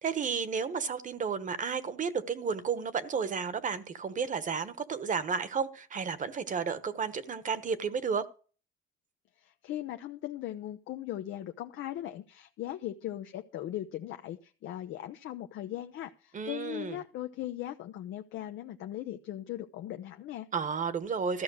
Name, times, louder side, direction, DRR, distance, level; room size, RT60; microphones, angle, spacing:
voice 1, 0.0-8.3 16.3-17.0 20.5-21.4, right 6 dB, 40° right, 1.2 m, -32 dB
voice 2, 9.4-20.5, left 12 dB, 75° left, 0.7 m, -39 dB
13.5 x 5.8 x 6.3 m
cardioid pair, 110°, 20 cm